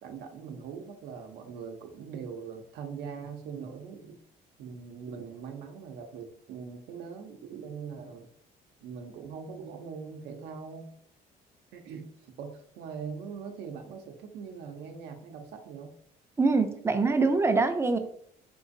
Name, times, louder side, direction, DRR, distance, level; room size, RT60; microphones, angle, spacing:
voice 1, 0.0-4.2 4.6-8.3 8.8-10.9 11.7-15.9, right 6 dB, 80° right, 4 dB, 0.5 m, -41 dB
voice 2, 16.4-18.0, right 3 dB, 15° right, 7 dB, 0.3 m, -24 dB
3.8 x 2.4 x 2.5 m, 0.62 s
cardioid pair, 110°, 17 cm